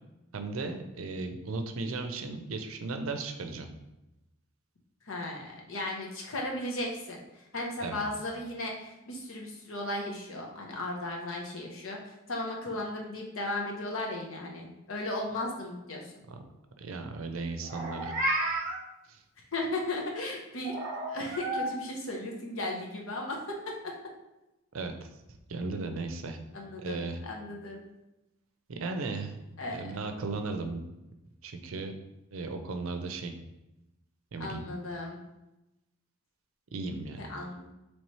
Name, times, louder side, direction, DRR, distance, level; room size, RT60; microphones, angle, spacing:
voice 1, 0.3-3.7 7.8-8.0 16.3-16.4 16.8-18.1 19.1-19.2 24.7-24.9 25.5-26.4 26.8-27.2 28.7-29.4 29.7-30.8 31.4-31.9 32.3-33.3 34.3-34.6 36.7-37.2, right 3 dB, 70° right, 6 dB, 0.5 m, -36 dB
voice 2, 5.1-7.2 7.5-16.1 19.5-20.8 21.0-23.9 26.5-27.8 29.6-29.8 34.4-35.2 37.2-37.7, left 1 dB, 70° left, 0 dB, 0.9 m, -36 dB
Meow, 17.6-18.8 20.6-21.7, right 1 dB, 45° right, 0.8 m, -32 dB
3.2 x 3.1 x 4.2 m, 0.95 s
head